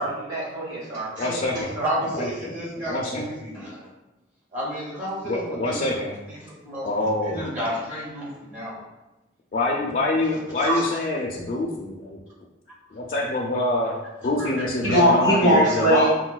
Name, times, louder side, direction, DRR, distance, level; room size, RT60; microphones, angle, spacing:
voice 1, 0.0-1.9 14.8-16.1, right 1 dB, 65° right, -6 dB, 1.2 m, -22 dB
voice 2, 1.2-1.7 2.1-2.5 2.9-3.2 5.2-6.2 6.8-7.5 9.5-12.2 12.9-16.1, left 2 dB, 40° left, -4 dB, 0.3 m, -25 dB
voice 3, 1.8-3.9 4.5-6.9 7.2-8.8 10.6-10.8 14.4-14.5, right 1 dB, 40° right, -5 dB, 0.7 m, -31 dB
4.6 x 2.2 x 2.2 m, 1.0 s
head